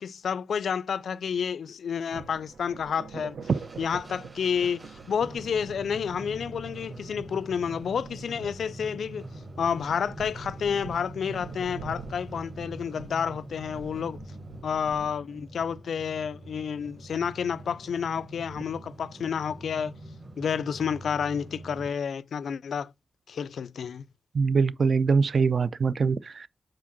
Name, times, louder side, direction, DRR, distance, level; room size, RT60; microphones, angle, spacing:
voice 1, 0.0-3.4 3.8-9.3 9.6-14.2 14.6-19.9 20.4-22.9 23.3-24.0, left 7 dB, 80° left, 0.3 m, -30 dB
sound 1, 2.1-15.1, right 5 dB, 75° right, 0.8 m, -45 dB
sound 2, 3.4-21.9, right 1 dB, 25° right, 1.2 m, -44 dB
voice 2, 24.3-26.5, right 5 dB, 50° right, 0.4 m, -23 dB
4.8 x 4.4 x 5.8 m
wide cardioid pair, 155°, 0 cm